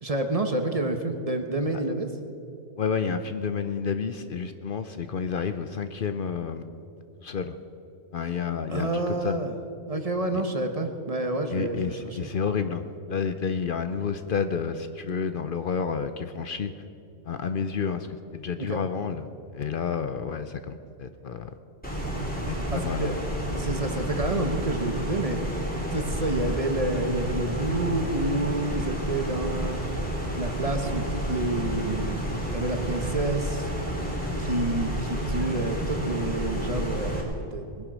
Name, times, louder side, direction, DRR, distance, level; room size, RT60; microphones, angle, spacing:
voice 1, 0.0-2.1 8.7-9.5 9.9-12.3 18.6-18.8 22.7-23.2 23.5-25.4 25.9-29.8 30.4-33.7 34.4-37.9, right 2 dB, 35° right, 6 dB, 1.1 m, -29 dB
voice 2, 2.8-6.7 7.2-7.5 8.1-9.4 10.3-10.4 11.5-16.7 17.2-18.1 18.3-21.5 22.5-23.2, left 6 dB, 55° left, 9 dB, 0.7 m, -30 dB
sound 1, 21.8-37.2, equal, 10° left, 2.8 m, -30 dB
20.5 x 10.5 x 6.1 m, 2.7 s
omnidirectional pair, 1.1 m